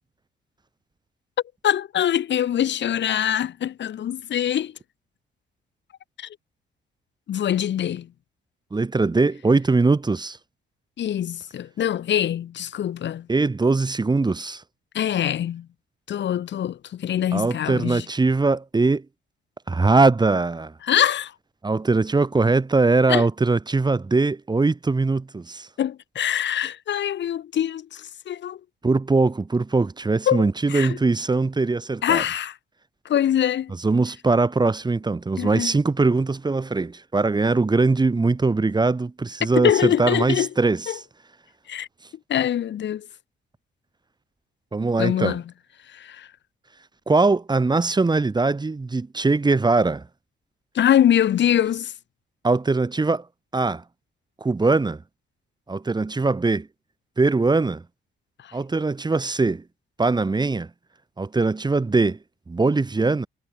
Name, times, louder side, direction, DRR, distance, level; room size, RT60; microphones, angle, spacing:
voice 1, 1.6-4.8 6.2-6.3 7.3-8.1 11.0-13.3 14.9-15.7 16.1-18.1 20.8-21.3 23.1-23.3 25.8-28.6 30.3-31.0 32.0-32.6 33.0-33.7 35.4-35.8 39.4-40.5 40.9-41.0 41.7-41.9 42.3-43.1 45.0-45.4 45.9-46.3 50.7-51.9 58.4-58.6, left 10 dB, 65° left, 2.8 m, -24 dB
voice 2, 8.7-10.4 13.3-14.6 17.3-19.0 19.7-20.7 21.6-25.7 28.8-32.2 33.8-40.8 44.7-45.4 47.1-50.0 52.4-53.2 53.5-53.8 54.4-55.0 55.7-56.7 57.2-57.8 58.5-59.6 60.0-60.7 61.2-62.2 62.5-63.3, right 3 dB, 20° right, 1.7 m, -21 dB
cardioid pair, 90°, 20 cm